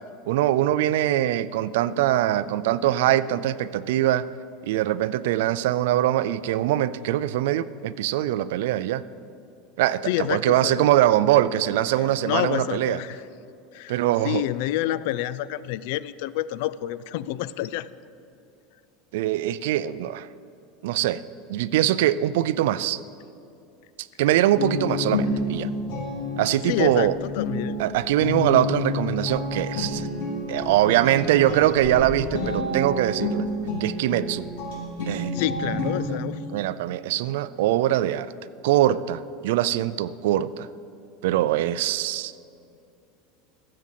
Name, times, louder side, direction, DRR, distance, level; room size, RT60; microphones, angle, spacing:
voice 1, 0.3-4.3 4.6-9.0 9.8-13.0 13.9-14.4 19.1-20.3 20.8-21.2 21.5-23.0 24.2-25.7 26.4-27.2 27.8-30.1 30.5-33.5 33.8-34.5 35.1-35.3 36.5-38.3 38.6-40.7 41.2-42.3, right 13 dB, 80° right, 17 dB, 0.4 m, -22 dB
voice 2, 10.0-10.9 12.2-13.2 13.7-17.9 26.7-27.8 35.3-36.4, left 14 dB, 65° left, 17 dB, 0.4 m, -28 dB
sound 1, 24.6-36.0, left 1 dB, 80° left, 3.5 m, -29 dB
14.5 x 7.5 x 7.5 m, 2.6 s
supercardioid pair, 155°, 0 cm